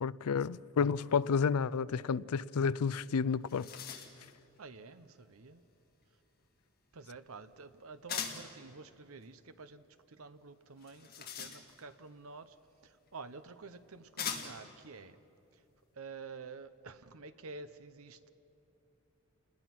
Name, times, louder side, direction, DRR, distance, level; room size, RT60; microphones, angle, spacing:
voice 1, 0.0-3.7, left 6 dB, 85° left, 0.4 m, -31 dB
sound 1, 3.0-3.1 3.3-4.3 8.1-8.5 10.8-12.0 13.1-13.2 14.2-14.7, left 7 dB, 45° left, 2.0 m, -41 dB
voice 2, 4.6-5.6 6.9-12.6 12.8-15.2 15.5-15.6 15.9-18.3, right 4 dB, 75° right, 0.9 m, -49 dB
29.0 x 20.5 x 6.0 m
head